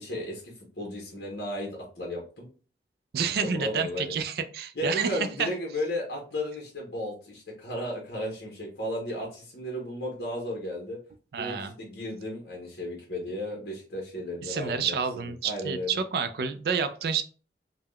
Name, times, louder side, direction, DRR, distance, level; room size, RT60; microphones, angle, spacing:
voice 1, 0.0-2.5 3.4-4.1 4.7-11.0 11.4-16.0, left 1 dB, 60° left, -2 dB, 0.8 m, -34 dB
voice 2, 3.1-5.5 11.3-11.7 14.4-17.2, right 6 dB, 60° right, 10 dB, 0.3 m, -29 dB
3.4 x 2.1 x 2.2 m, 0.38 s
head